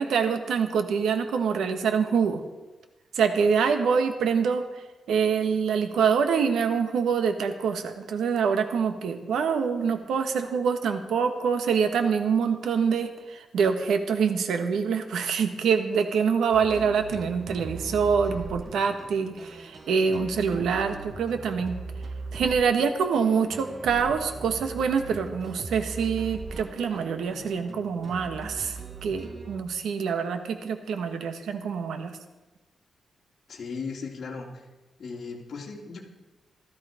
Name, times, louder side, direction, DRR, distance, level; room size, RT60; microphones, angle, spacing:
voice 1, 0.0-2.4 3.1-21.8 22.3-32.2, right 6 dB, 90° right, 7 dB, 1.6 m, -25 dB
sound 1, 16.5-29.6, right 3 dB, 30° right, 0.9 m, -40 dB
voice 2, 33.5-34.5 35.0-36.0, left 5 dB, 50° left, -2 dB, 3.0 m, -36 dB
16.0 x 13.5 x 5.2 m, 1.1 s
wide cardioid pair, 135°, 0 cm